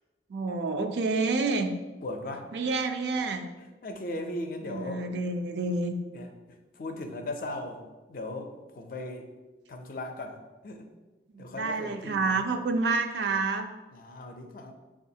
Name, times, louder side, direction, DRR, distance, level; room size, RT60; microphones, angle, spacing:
voice 1, 0.3-1.7 2.5-3.5 4.6-5.9 11.3-13.7, right 3 dB, 75° right, 6 dB, 0.4 m, -28 dB
voice 2, 2.0-2.7 3.6-5.0 6.1-9.3 9.7-10.4 10.6-10.9 11.4-12.4 13.9-14.7, left 2 dB, 50° left, 5 dB, 0.4 m, -38 dB
6.8 x 2.3 x 2.7 m, 1.2 s
head